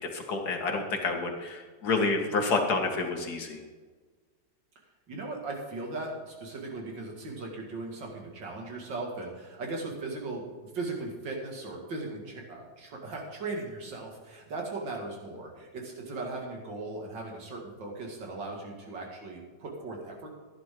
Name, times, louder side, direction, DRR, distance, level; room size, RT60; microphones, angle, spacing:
voice 1, 0.0-3.6, left 3 dB, 60° left, 3 dB, 2.1 m, -29 dB
voice 2, 5.1-20.3, right 3 dB, 75° right, 0 dB, 2.8 m, -38 dB
15.0 x 10.5 x 3.8 m, 1.4 s
omnidirectional pair, 2.0 m